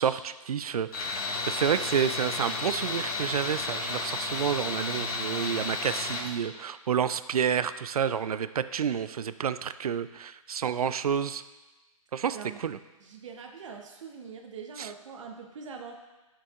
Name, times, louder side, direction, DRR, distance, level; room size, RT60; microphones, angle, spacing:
voice 1, 0.0-11.4 12.1-12.8 14.8-14.9, right 8 dB, 85° right, 13 dB, 0.4 m, -29 dB
Tools, 0.9-6.3, left 3 dB, 75° left, 2.3 m, -32 dB
voice 2, 12.3-12.6 13.0-15.9, right 6 dB, 55° right, 3 dB, 0.9 m, -43 dB
10.0 x 7.4 x 2.4 m, 1.1 s
hypercardioid pair, 140°, 18 cm